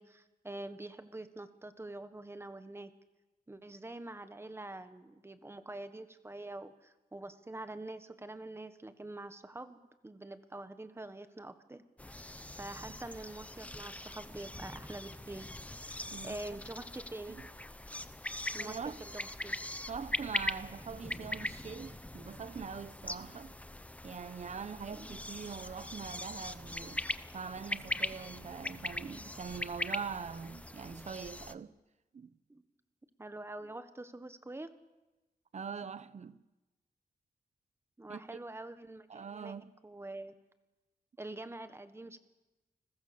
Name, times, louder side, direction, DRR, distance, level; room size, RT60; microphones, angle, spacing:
voice 1, 0.0-2.9 3.5-12.2 12.6-15.5 16.2-17.4 18.5-19.6 24.9-25.2 32.5-32.6 33.2-34.7 38.0-39.5 39.8-40.3 41.2-42.2, right 2 dB, 15° right, 1.5 m, -45 dB
sound 1, 12.0-31.5, left 1 dB, 10° left, 0.8 m, -41 dB
voice 2, 16.1-16.6 17.3-17.5 18.6-19.0 19.9-23.6 24.0-27.1 27.3-31.7 32.1-32.4 35.5-36.4 38.1-38.4 39.1-39.8, right 6 dB, 45° right, 1.0 m, -43 dB
30.0 x 21.0 x 7.1 m
wide cardioid pair, 175°, 16 cm